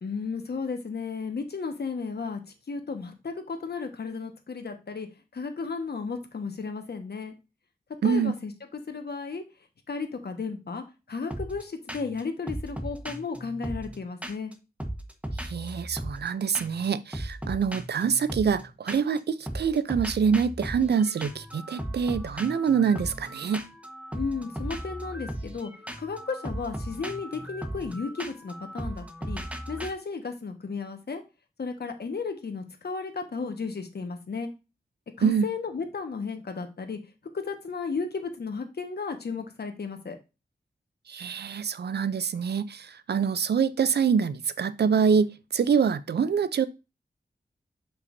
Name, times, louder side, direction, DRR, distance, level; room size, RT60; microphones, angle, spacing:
voice 1, 0.0-2.4 2.7-5.1 5.3-7.3 8.0-9.4 9.9-14.5 24.1-25.7 26.0-29.4 29.7-31.2 31.6-34.5 35.2-37.0 37.3-40.2, left 4 dB, 75° left, 1.4 m, -34 dB
voice 2, 8.0-8.3 15.4-23.7 35.2-35.5 41.1-46.7, right 6 dB, 90° right, 0.5 m, -25 dB
sound 1, 11.3-11.6 11.9-12.2 12.5-14.5 14.8-16.3 16.5-16.9 17.1-19.2 19.5-29.9, right 1 dB, 10° right, 1.2 m, -37 dB
7.0 x 5.6 x 2.7 m
wide cardioid pair, 70°, 17 cm